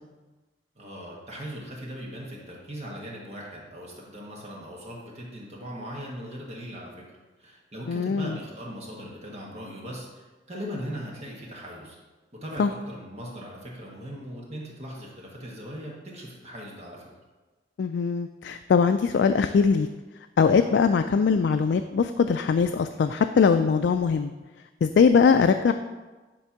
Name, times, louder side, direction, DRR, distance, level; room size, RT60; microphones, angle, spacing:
voice 1, 0.8-6.9 7.4-12.0 12.4-17.1 25.1-25.4, equal, 35° right, -3 dB, 1.4 m, -39 dB
voice 2, 7.9-8.4 12.6-12.7 17.8-19.9 20.4-24.3 24.8-25.7, left 5 dB, 70° left, 8 dB, 0.3 m, -21 dB
9.9 x 3.4 x 5.8 m, 1.2 s
head